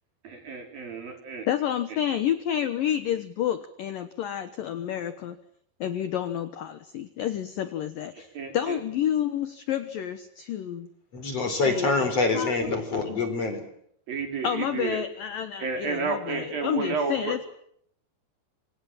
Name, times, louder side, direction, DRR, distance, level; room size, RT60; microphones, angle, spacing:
voice 1, 0.2-1.5 8.3-8.8 14.1-15.0 15.6-17.3, right 5 dB, 50° right, 4 dB, 5.9 m, -31 dB
voice 2, 1.5-5.4 5.8-10.9 11.5-11.9 12.3-12.6 13.1-13.2 14.4-17.6, left 10 dB, 65° left, 11 dB, 2.3 m, -30 dB
voice 3, 11.1-13.6, left 3 dB, 35° left, 8 dB, 4.7 m, -25 dB
28.0 x 25.5 x 7.5 m, 0.71 s
omnidirectional pair, 5.3 m